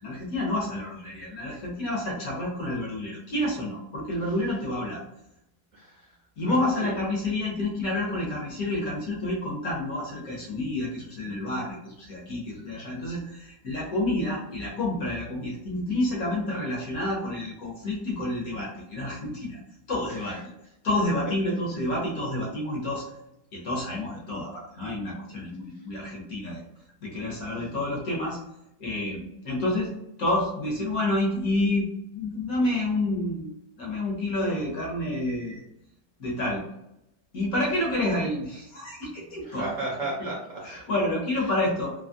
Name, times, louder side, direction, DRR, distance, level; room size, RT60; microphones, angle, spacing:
voice 1, 0.0-5.0 6.4-19.6 19.9-20.4 20.8-23.1 23.5-26.6 27.0-28.4 28.8-29.9 30.2-31.9 32.1-35.6 36.2-36.6 37.3-39.7 40.7-41.9, left 1 dB, 60° left, -3 dB, 1.2 m, -29 dB
voice 2, 5.7-6.2 6.5-6.9 20.1-20.4 25.7-25.9 27.6-27.7 39.4-40.9 41.3-41.5, right 2 dB, 60° right, -4 dB, 0.9 m, -36 dB
3.4 x 2.0 x 2.4 m, 0.84 s
omnidirectional pair, 1.9 m